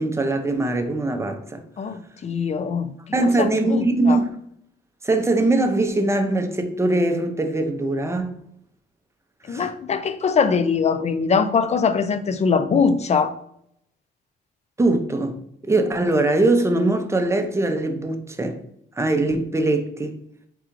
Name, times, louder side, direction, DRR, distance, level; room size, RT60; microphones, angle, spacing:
voice 1, 0.0-1.6 3.1-4.3 5.0-8.4 9.5-9.6 14.8-15.4 15.7-18.6 19.0-20.2, right 2 dB, 15° right, 0.6 m, -21 dB
voice 2, 1.8-2.9 3.3-4.2 9.5-13.3, left 5 dB, 35° left, 0.4 m, -22 dB
3.7 x 2.3 x 4.5 m
cardioid pair, 90°, 20 cm